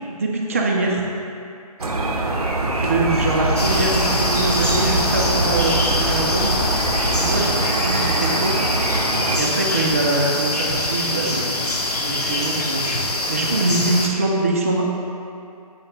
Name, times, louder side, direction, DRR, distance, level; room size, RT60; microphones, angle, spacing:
voice 1, 0.1-1.0 2.8-6.5 7.1-8.5 9.3-11.6 12.0-12.8 13.3-14.9, right 2 dB, 20° right, -1 dB, 0.4 m, -23 dB
sound 1, 1.8-9.4, right 2 dB, 70° right, 0.7 m, -23 dB
sound 2, 2.7-7.5, right 1 dB, 20° left, 1.1 m, -28 dB
sound 3, 3.6-14.1, left 1 dB, 85° left, 0.9 m, -24 dB
7.2 x 2.8 x 5.5 m, 2.6 s
figure-of-eight pair, 160°, 20 cm